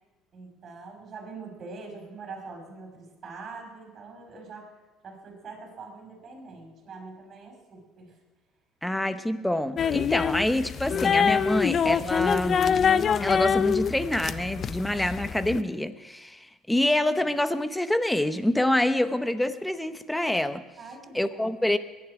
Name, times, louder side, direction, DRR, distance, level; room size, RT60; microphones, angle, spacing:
voice 1, 0.3-4.8 5.0-8.2 11.4-11.7 20.8-21.5, right 4 dB, 40° right, 1 dB, 5.3 m, -43 dB
voice 2, 8.8-12.7 13.2-20.6 21.1-21.8, left 1 dB, 5° left, 11 dB, 0.8 m, -26 dB
sound 1, 9.8-15.6, left 7 dB, 40° left, 0.4 m, -25 dB
22.0 x 11.0 x 4.9 m, 1.2 s
cardioid pair, 125°, 0 cm